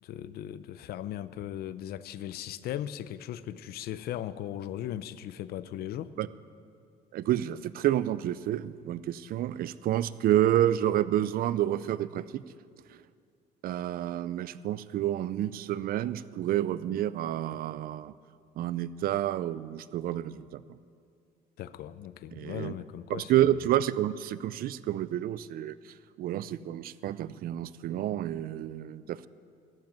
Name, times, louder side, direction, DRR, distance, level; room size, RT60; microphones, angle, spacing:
voice 1, 0.0-6.1 21.6-23.4, left 11 dB, 70° left, 16 dB, 0.5 m, -38 dB
voice 2, 7.1-12.4 12.9-13.0 13.6-18.1 18.6-20.8 22.3-22.7 23.1-29.3, right 12 dB, 60° right, 17 dB, 0.5 m, -29 dB
14.5 x 7.6 x 9.3 m, 2.3 s
cardioid pair, 110°, 17 cm